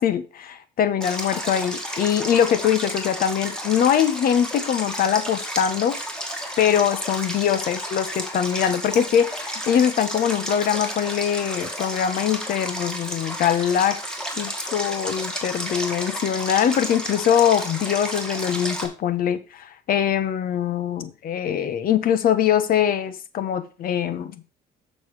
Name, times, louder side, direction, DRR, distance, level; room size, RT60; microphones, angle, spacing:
voice 1, 0.0-6.0 6.6-14.0 14.4-24.3, left 9 dB, 60° left, 12 dB, 1.1 m, -22 dB
Stream, 1.0-18.9, equal, 5° left, 2.1 m, -32 dB
7.0 x 6.5 x 4.8 m, 0.34 s
cardioid pair, 110°, 17 cm